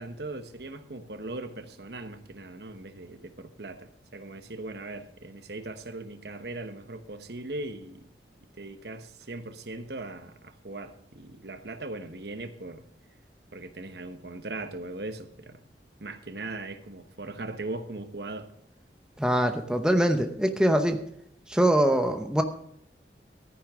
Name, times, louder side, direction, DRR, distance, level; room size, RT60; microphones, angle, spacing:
voice 1, 0.0-8.0 8.6-12.8 13.5-15.6 16.0-18.5, right 2 dB, 70° right, 9 dB, 1.1 m, -39 dB
voice 2, 19.2-21.0 21.5-22.4, right 1 dB, 5° right, 5 dB, 0.8 m, -23 dB
13.5 x 10.0 x 3.6 m, 0.70 s
head